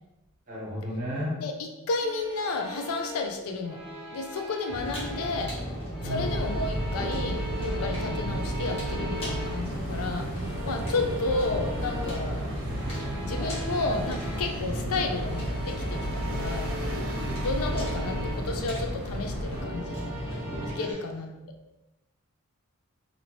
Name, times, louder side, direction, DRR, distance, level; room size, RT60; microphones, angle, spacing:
voice 1, 0.5-1.4 6.0-6.3 20.8-20.9, left 1 dB, 40° right, -5 dB, 1.0 m, -33 dB
voice 2, 1.4-3.8 4.1-5.6 6.0-12.5 13.2-16.7 17.4-20.0 20.6-21.4, left 3 dB, 80° left, 5 dB, 0.4 m, -32 dB
sound 1, 2.0-5.6 5.9-9.8 10.3-14.7 15.0-18.6 19.4-20.9, equal, 5° right, 0.9 m, -40 dB
sound 2, 4.7-20.7, equal, 25° left, 0.9 m, -35 dB
sound 3, 6.2-19.6, right 1 dB, 65° right, 0.7 m, -34 dB
2.7 x 2.7 x 2.9 m, 1.0 s
head